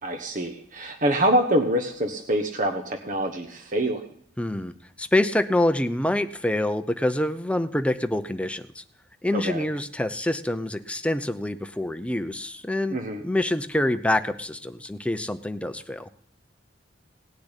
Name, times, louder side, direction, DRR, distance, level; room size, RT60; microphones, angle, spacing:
voice 1, 0.0-4.0 9.3-9.7 12.9-13.2, right 1 dB, 45° right, 6 dB, 1.2 m, -25 dB
voice 2, 4.4-8.8 9.2-13.0 13.2-16.1, left 1 dB, 5° left, 10 dB, 0.7 m, -26 dB
18.0 x 6.8 x 10.0 m, 0.62 s
head